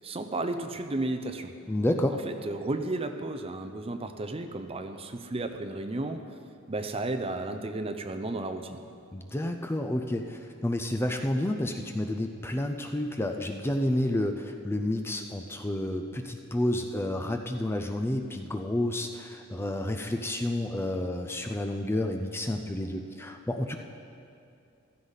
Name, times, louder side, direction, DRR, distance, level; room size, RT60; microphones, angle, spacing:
voice 1, 0.0-1.5 2.3-6.2 6.7-8.8, right 2 dB, 25° right, 7 dB, 0.6 m, -33 dB
voice 2, 1.7-2.2 9.1-23.8, left 1 dB, 10° left, 4 dB, 0.5 m, -30 dB
15.0 x 13.5 x 4.1 m, 2.5 s
head